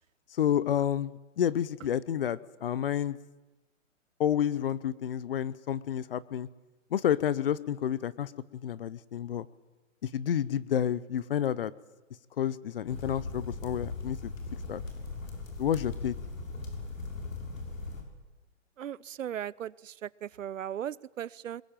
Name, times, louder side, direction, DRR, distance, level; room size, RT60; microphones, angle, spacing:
voice 1, 0.3-3.2 4.2-6.5 6.9-9.5 10.0-11.7 12.4-14.3 14.7-14.8 15.6-16.1, left 9 dB, 45° left, 20 dB, 0.9 m, -30 dB
sound 1, 12.9-18.0, left 3 dB, 85° left, 6.7 m, -39 dB
voice 2, 18.8-21.6, right 10 dB, 80° right, 23 dB, 0.8 m, -37 dB
22.0 x 21.5 x 9.1 m, 1.1 s
hypercardioid pair, 165°, 39 cm